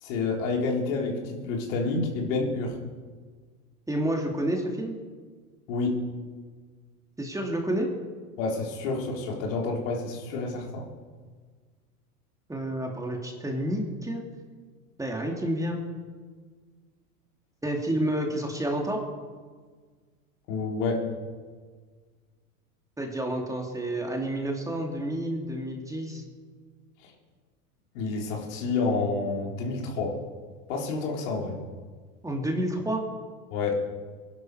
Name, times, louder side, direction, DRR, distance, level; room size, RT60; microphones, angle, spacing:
voice 1, 0.0-2.7 5.7-6.0 8.4-10.9 20.5-21.1 27.0-27.1 27.9-30.2 30.7-31.6 33.5-33.8, left 3 dB, 60° left, 0 dB, 3.8 m, -29 dB
voice 2, 3.9-5.0 7.2-7.9 12.5-14.2 15.0-15.8 17.6-19.0 23.0-26.2 32.2-33.0, right 1 dB, 5° right, 1 dB, 2.6 m, -29 dB
22.0 x 11.5 x 4.8 m, 1.5 s
hypercardioid pair, 105°, 44 cm